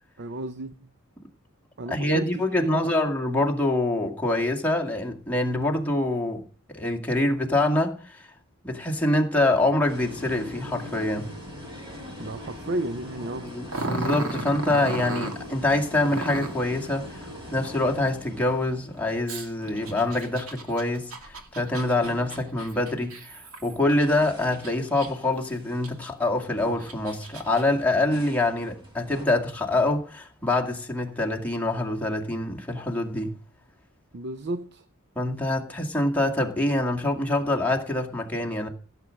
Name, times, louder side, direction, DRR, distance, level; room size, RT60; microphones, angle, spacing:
voice 1, 0.2-0.9 1.8-3.1 12.2-13.6 34.1-34.8, right 2 dB, 55° right, 0.6 m, -33 dB
voice 2, 1.9-6.4 6.7-8.3 8.6-11.3 13.4-33.3 35.2-38.7, left 2 dB, 10° left, 2.0 m, -25 dB
sound 1, 9.9-21.4 21.7-23.1 23.7-29.3, left 1 dB, 25° right, 5.4 m, -43 dB
Growling, 13.7-15.4 16.0-16.6 19.3-24.0 24.5-25.3 25.8-25.9 26.6-27.6, right 2 dB, 80° right, 2.4 m, -34 dB
16.0 x 7.6 x 6.3 m
head